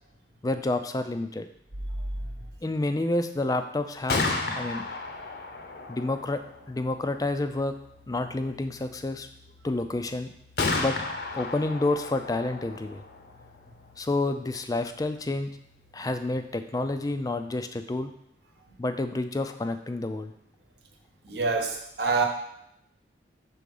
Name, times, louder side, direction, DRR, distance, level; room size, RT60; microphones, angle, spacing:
voice 1, 0.4-1.5 2.6-4.8 5.9-6.4 6.7-7.8 8.1-9.3 9.6-10.3 10.7-11.0 11.4-13.0 14.0-15.5 15.9-18.1 18.8-20.3, left 2 dB, 20° left, 8 dB, 0.4 m, -29 dB
Gunshot gunfire, 3.8-17.7, left 3 dB, 60° left, 0.7 m, -36 dB
voice 2, 21.2-22.3, right 4 dB, 65° right, 2 dB, 1.0 m, -26 dB
6.1 x 3.8 x 5.4 m, 0.77 s
head